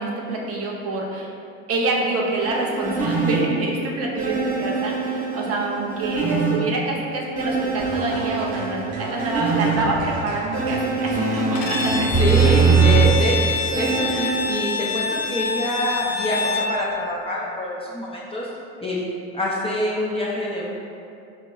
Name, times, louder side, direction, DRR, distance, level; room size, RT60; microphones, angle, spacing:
voice 1, 0.0-1.3 1.7-12.3 14.1-14.4, right 2 dB, 40° right, -1 dB, 0.6 m, -26 dB
sound 1, 2.4-3.4 4.2-6.6 7.4-9.7 10.5-13.0 13.7-14.5, right 5 dB, 20° right, 0.9 m, -22 dB
sound 2, 7.7-13.9, right 1 dB, 85° right, 0.5 m, -35 dB
Bowed string instrument, 11.6-16.8, left 4 dB, 75° left, 0.5 m, -26 dB
voice 2, 12.2-18.5 18.8-19.1 19.3-20.6, left 1 dB, 15° left, -6 dB, 0.3 m, -26 dB
4.2 x 2.1 x 2.2 m, 2.5 s
supercardioid pair, 85°, 36 cm